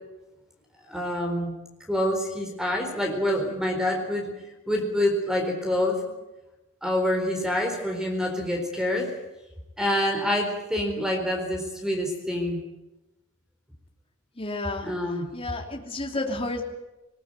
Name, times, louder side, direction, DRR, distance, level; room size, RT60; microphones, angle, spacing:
voice 1, 0.8-1.5 1.9-4.3 4.7-6.0 6.8-9.1 9.8-12.6 14.8-15.2, left 1 dB, 5° right, 2 dB, 4.2 m, -26 dB
voice 2, 14.4-14.9 15.3-16.6, left 2 dB, 30° left, 1 dB, 3.0 m, -31 dB
20.5 x 20.5 x 9.0 m, 1.0 s
head